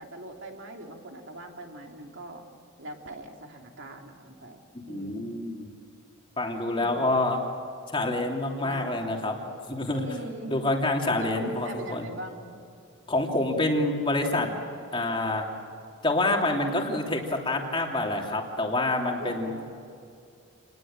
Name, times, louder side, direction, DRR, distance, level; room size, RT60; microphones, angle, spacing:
voice 1, 0.0-2.4 2.8-5.2 6.7-7.2 8.6-9.1 9.9-10.6 11.2-12.6 19.2-19.7, right 1 dB, 60° right, 2 dB, 3.0 m, -41 dB
voice 2, 4.7-5.7 6.4-7.4 7.9-9.4 9.7-10.0 10.5-12.1 13.1-14.5 14.9-15.5 16.0-19.5, left 2 dB, 25° left, 1 dB, 3.1 m, -27 dB
29.0 x 20.0 x 8.8 m, 2.5 s
head